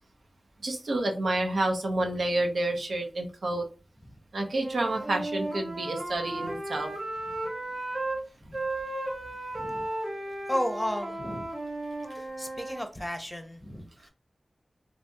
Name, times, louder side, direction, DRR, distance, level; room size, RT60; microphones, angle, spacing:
voice 1, 0.6-3.6 4.3-6.9, right 2 dB, 90° right, 3 dB, 0.6 m, -29 dB
Wind instrument woodwind instrument, 4.6-8.2 8.5-12.8, right 2 dB, 65° right, 1.2 m, -35 dB
voice 2, 9.5-9.9 10.5-11.5 12.1-14.1, equal, 10° left, 6 dB, 0.6 m, -34 dB
2.8 x 2.7 x 2.2 m, 0.34 s
wide cardioid pair, 65°, 0 cm